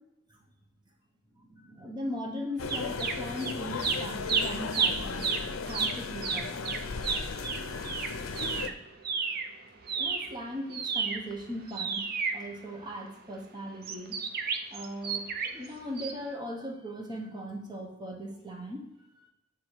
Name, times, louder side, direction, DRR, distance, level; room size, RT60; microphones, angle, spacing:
voice 1, 1.3-5.3 5.7-6.5 9.9-14.2 14.7-19.3, equal, 20° right, 1 dB, 0.9 m, -39 dB
sound 1, 2.6-8.7, left 4 dB, 90° left, 0.5 m, -36 dB
sound 2, 2.7-3.5 3.8-9.5 9.8-13.1 13.8-15.7 16.0-16.1, right 5 dB, 50° right, 0.5 m, -31 dB
8.2 x 3.7 x 4.5 m, 0.94 s
head